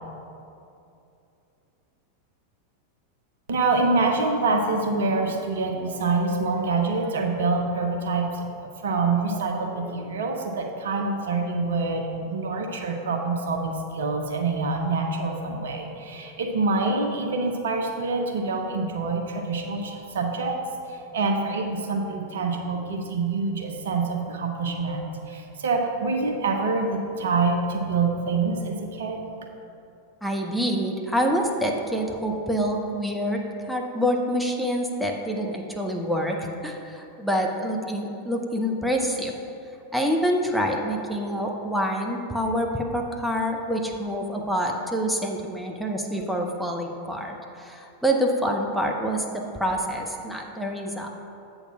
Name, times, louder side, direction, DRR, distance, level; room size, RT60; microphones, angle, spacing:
voice 1, 3.5-20.6 20.9-29.2, right 3 dB, 60° right, 3 dB, 0.8 m, -26 dB
voice 2, 30.2-33.4 33.7-39.3 39.9-51.1, equal, ahead, 0 dB, 0.7 m, -26 dB
8.1 x 4.0 x 5.9 m, 2.7 s
figure-of-eight pair, 90°, 0 cm